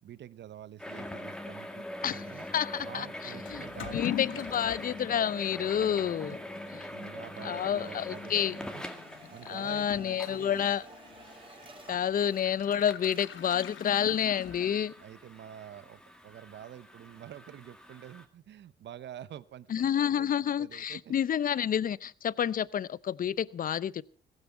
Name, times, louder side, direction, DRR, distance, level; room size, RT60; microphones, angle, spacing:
voice 1, 0.0-2.5 2.8-4.0 4.2-4.5 6.5-8.8 9.3-10.7 11.8-12.0 14.5-14.7 15.0-21.1, right 11 dB, 65° right, 0.9 m, -48 dB
sound 1, 0.8-18.3, left 1 dB, 5° left, 2.1 m, -44 dB
voice 2, 2.5-3.6 3.9-6.4 7.4-8.6 9.4-10.8 11.9-14.9 19.7-24.0, left 9 dB, 45° left, 0.6 m, -29 dB
Toilet flush / Liquid, 3.5-15.1, left 10 dB, 75° left, 1.3 m, -44 dB
sound 2, 7.8-12.8 13.0-14.5, right 2 dB, 25° right, 3.7 m, -53 dB
16.0 x 15.5 x 4.6 m
cardioid pair, 90°, 20 cm